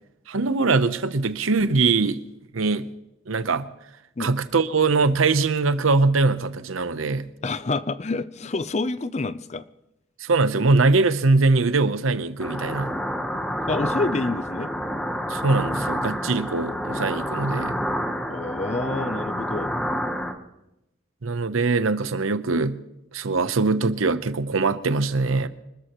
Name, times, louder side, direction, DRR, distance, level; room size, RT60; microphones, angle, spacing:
voice 1, 0.3-2.2 2.5-2.9 3.3-3.7 4.2-7.3 10.2-12.9 15.3-17.8 21.2-22.8 23.1-25.5, right 3 dB, 90° right, 12 dB, 0.8 m, -22 dB
voice 2, 7.4-9.6 13.7-14.7 18.3-19.8, left 3 dB, 35° left, 15 dB, 0.5 m, -28 dB
sound 1, 12.4-20.3, equal, 5° left, 1.0 m, -28 dB
25.5 x 13.5 x 3.0 m, 0.87 s
head